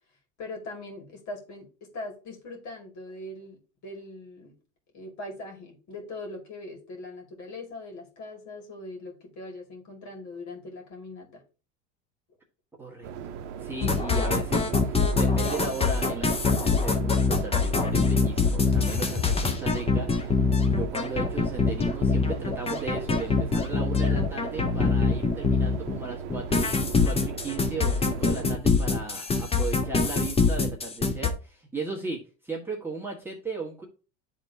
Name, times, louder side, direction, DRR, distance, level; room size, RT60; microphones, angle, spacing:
voice 1, 0.4-4.5 4.9-11.4, left 2 dB, 50° left, 1 dB, 2.3 m, -41 dB
voice 2, 12.8-33.9, right 3 dB, 5° right, -4 dB, 1.5 m, -37 dB
sound 1, 13.0-28.6, right 7 dB, 65° right, 0.7 m, -38 dB
sound 2, 13.8-26.0 26.3-31.3, left 4 dB, 15° left, 0.7 m, -24 dB
10.5 x 3.6 x 2.7 m, 0.35 s
supercardioid pair, 105°, 37 cm